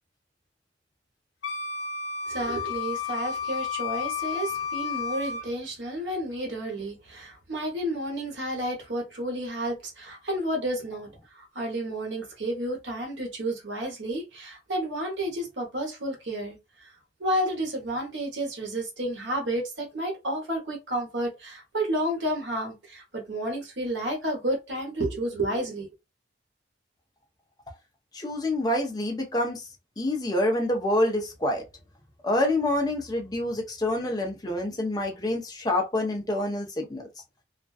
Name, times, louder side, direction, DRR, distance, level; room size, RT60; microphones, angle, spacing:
Wind instrument woodwind instrument, 1.4-5.5, left 6 dB, 85° left, 0.5 m, -32 dB
voice 1, 2.3-16.9 17.2-25.9, right 1 dB, 80° right, 1.0 m, -31 dB
voice 2, 28.1-29.7 30.0-31.6 32.2-37.0, left 1 dB, 20° left, 0.6 m, -27 dB
2.4 x 2.2 x 2.3 m
head